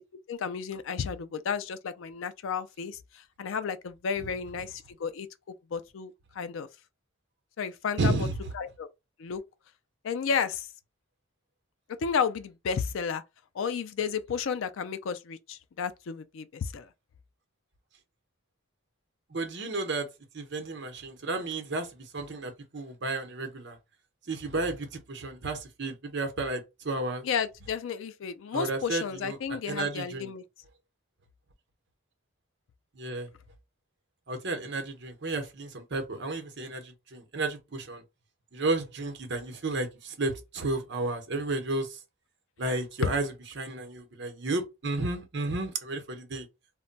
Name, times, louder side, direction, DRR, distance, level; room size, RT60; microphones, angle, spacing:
voice 1, 0.3-6.7 7.6-8.3 8.5-8.9 9.2-9.4 10.0-10.7 12.0-13.2 13.6-16.9 27.2-30.4 43.0-43.1, left 6 dB, 70° left, 0.4 m, -32 dB
voice 2, 8.0-8.3 19.3-20.1 20.3-23.8 24.3-27.3 28.5-30.3 32.9-33.3 34.3-38.0 38.5-42.0 42.6-46.5, right 2 dB, 55° right, 0.7 m, -32 dB
2.2 x 2.2 x 3.8 m
head